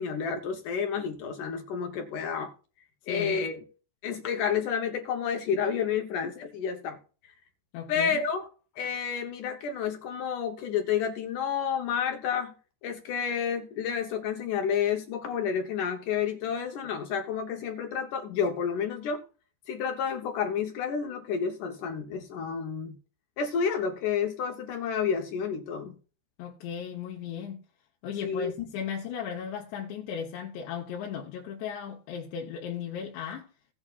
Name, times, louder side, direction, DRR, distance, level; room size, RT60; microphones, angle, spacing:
voice 1, 0.0-2.5 3.1-3.5 4.0-7.0 7.9-8.5 8.8-12.5 12.8-19.2 19.7-23.0 23.4-26.0 28.2-28.5, left 7 dB, 75° left, 1.9 m, -30 dB
voice 2, 3.1-3.4 7.7-8.2 26.4-27.6 28.0-33.5, left 8 dB, 90° left, 3.4 m, -36 dB
16.5 x 8.7 x 2.4 m
omnidirectional pair, 4.9 m